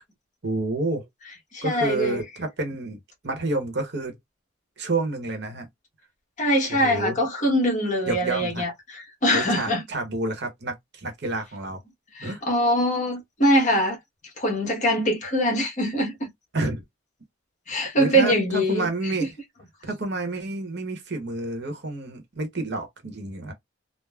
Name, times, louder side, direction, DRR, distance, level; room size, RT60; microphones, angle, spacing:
voice 1, 0.4-1.1 1.6-3.0 3.2-4.2 4.8-5.7 6.7-7.2 8.1-8.6 9.3-11.8 12.2-12.4 16.5-16.8 18.0-19.3 19.9-23.5, right 2 dB, 55° right, 0.9 m, -29 dB
voice 2, 1.5-2.2 6.4-9.8 12.1-14.0 14.4-16.3 17.7-19.1, equal, 35° left, 1.1 m, -23 dB
3.3 x 2.0 x 2.3 m
head